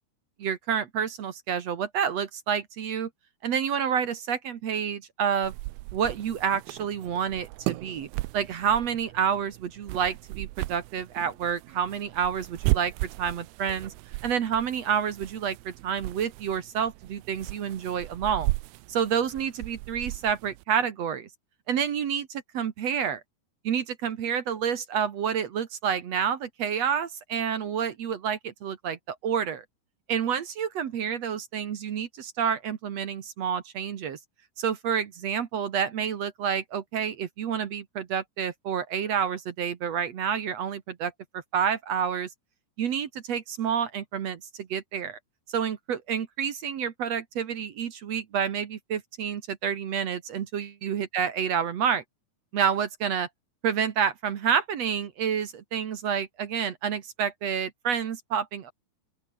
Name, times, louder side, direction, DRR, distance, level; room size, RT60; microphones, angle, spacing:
voice 1, 0.4-3.1 3.4-5.5 5.9-8.1 8.3-12.9 13.2-13.9 14.2-18.5 18.9-21.3 21.7-23.2 23.6-29.6 30.1-34.2 34.6-42.3 42.8-45.2 45.5-52.0 52.5-53.3 53.6-58.7, right 8 dB, 55° right, 2.0 m, -29 dB
sound 1, 5.4-20.6, right 21 dB, 80° right, 2.3 m, -36 dB
open air
omnidirectional pair, 4.6 m